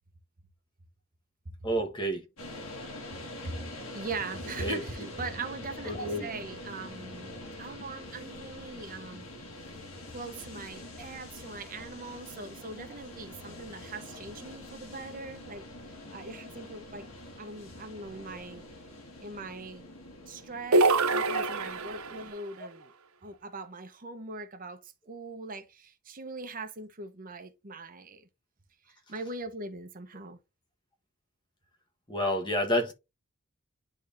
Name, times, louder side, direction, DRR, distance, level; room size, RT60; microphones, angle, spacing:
voice 1, 1.6-2.2 4.6-5.1 5.8-6.3 21.3-21.5 32.1-32.9, equal, 20° left, 1.3 m, -30 dB
sound 1, 2.4-22.3, left 1 dB, 65° left, 1.9 m, -45 dB
voice 2, 3.9-9.3 10.1-15.6 16.1-17.1 17.4-18.6 19.2-19.8 20.3-22.9 23.2-28.3 28.9-30.4, right 3 dB, 40° right, 0.9 m, -41 dB
sound 2, 20.7-22.3, right 2 dB, 75° right, 0.7 m, -25 dB
10.5 x 3.5 x 2.6 m
head